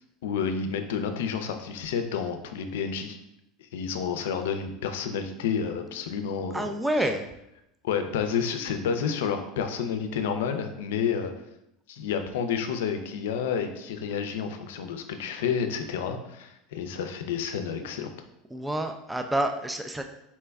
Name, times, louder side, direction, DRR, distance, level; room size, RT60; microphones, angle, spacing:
voice 1, 0.2-3.2 3.6-6.6 7.8-11.3 11.9-18.1, left 7 dB, 85° left, 7 dB, 0.4 m, -30 dB
voice 2, 6.5-7.3 18.5-20.0, right 1 dB, 5° right, 6 dB, 0.3 m, -28 dB
4.3 x 2.2 x 3.4 m, 0.82 s
supercardioid pair, 115°, 0 cm